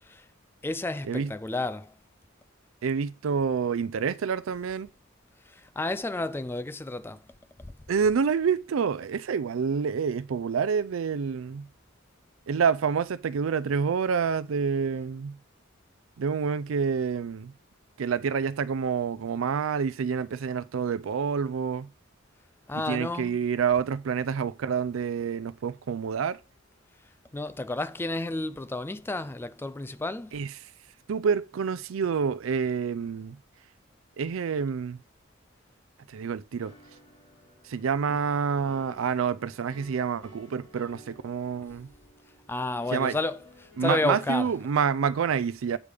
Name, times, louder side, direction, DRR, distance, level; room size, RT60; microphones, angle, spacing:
voice 1, 0.6-1.9 5.5-7.2 22.7-23.4 27.3-30.4 38.1-38.2 42.5-44.5, left 2 dB, 10° left, 0.3 m, -31 dB
voice 2, 2.8-4.9 7.9-11.7 12.5-15.4 16.2-17.5 18.0-21.9 22.9-26.4 30.3-30.5 31.1-33.4 34.2-35.0 36.1-36.7 37.6-41.9 42.9-43.2 43.8-45.8, right 6 dB, 80° right, 0.4 m, -28 dB
sound 1, 36.6-44.9, equal, 25° left, 3.7 m, -54 dB
8.3 x 4.9 x 3.5 m
head